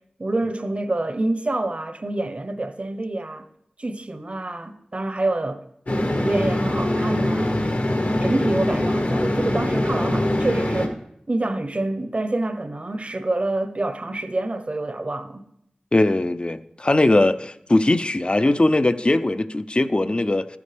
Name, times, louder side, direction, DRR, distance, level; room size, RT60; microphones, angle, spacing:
voice 1, 0.2-3.5 3.8-5.6 5.9-7.6 8.0-11.0 11.3-15.5, right 2 dB, 45° right, 0.8 m, -27 dB
sound 1, 5.9-10.9, left 1 dB, 70° left, 1.3 m, -23 dB
voice 2, 15.9-20.5, left 2 dB, 40° left, 0.5 m, -20 dB
13.5 x 9.4 x 3.4 m
wide cardioid pair, 55°, 3 cm